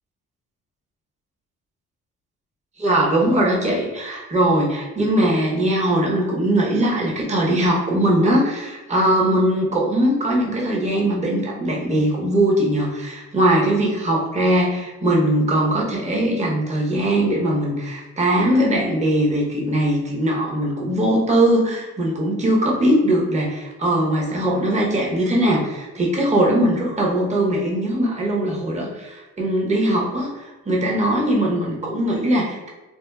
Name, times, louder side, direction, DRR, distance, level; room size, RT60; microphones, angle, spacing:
voice 1, 2.8-32.7, right 1 dB, 25° right, -2 dB, 0.8 m, -20 dB
4.2 x 2.1 x 2.2 m, 1.2 s
cardioid pair, 90°, 30 cm